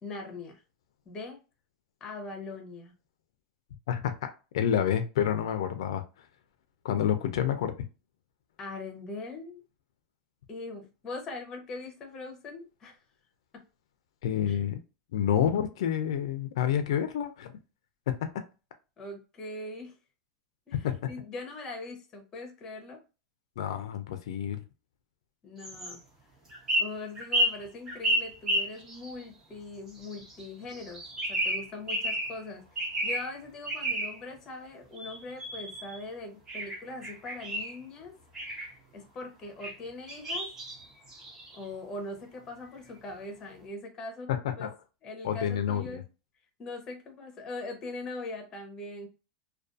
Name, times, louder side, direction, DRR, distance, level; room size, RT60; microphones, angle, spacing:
voice 1, 0.0-0.6 1.1-1.4 2.0-2.9 8.6-9.6 10.5-13.0 14.5-14.6 19.0-19.9 20.7-23.0 25.4-26.0 26.8-38.1 38.9-40.5 41.5-44.3 44.6-44.7 45.0-46.1 46.6-49.1, left 2 dB, 20° left, 0.7 m, -41 dB
voice 2, 3.9-6.0 6.8-7.7 14.2-14.8 15.1-17.5 18.1-18.4 20.8-21.0 23.6-24.6 44.3-44.7 45.2-46.0, left 9 dB, 85° left, 0.4 m, -28 dB
sound 1, 25.6-26.0 26.5-29.2 30.0-30.5 30.7-32.4 32.8-33.3 33.7-34.2 35.0-36.0 36.5-37.7 38.3-38.7 39.6-39.8 40.1-41.6, equal, 15° right, 0.7 m, -31 dB
2.4 x 2.2 x 2.5 m
supercardioid pair, 165°, 3 cm